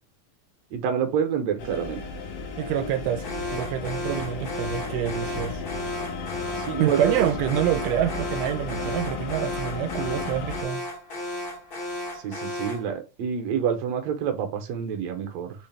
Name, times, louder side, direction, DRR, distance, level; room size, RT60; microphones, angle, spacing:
voice 1, 0.7-2.0 6.7-7.3 12.2-15.5, right 8 dB, 65° right, 1.9 m, -27 dB
sound 1, 1.6-10.6, left 4 dB, 80° left, 1.3 m, -34 dB
voice 2, 2.6-5.6 6.8-10.9, right 11 dB, 90° right, 2.2 m, -27 dB
Alarm, 3.2-12.9, left 1 dB, 60° left, 1.0 m, -35 dB
4.9 x 3.2 x 3.3 m
omnidirectional pair, 3.7 m